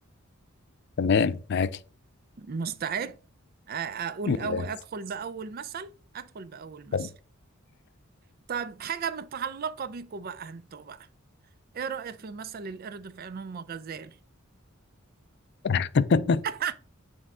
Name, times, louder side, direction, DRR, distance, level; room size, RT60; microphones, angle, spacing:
voice 1, 1.0-1.8 4.3-4.6 6.9-7.1 15.6-16.4, left 5 dB, 55° left, 0.4 m, -24 dB
voice 2, 2.4-3.2 3.7-7.1 8.5-11.1 11.7-14.2 16.4-16.7, right 6 dB, 45° right, 0.4 m, -35 dB
8.8 x 3.5 x 3.6 m
head